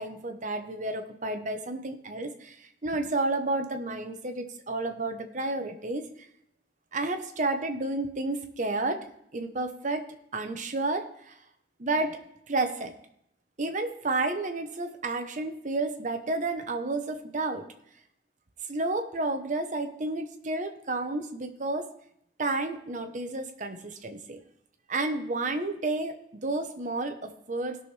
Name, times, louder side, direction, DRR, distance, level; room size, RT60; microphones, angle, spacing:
voice 1, 0.0-6.1 6.9-9.1 9.3-11.4 11.8-12.2 12.5-12.9 13.6-17.7 18.7-21.9 22.4-24.4 24.9-27.8, right 2 dB, 45° right, 6 dB, 1.0 m, -31 dB
18.0 x 6.3 x 3.4 m, 0.75 s
head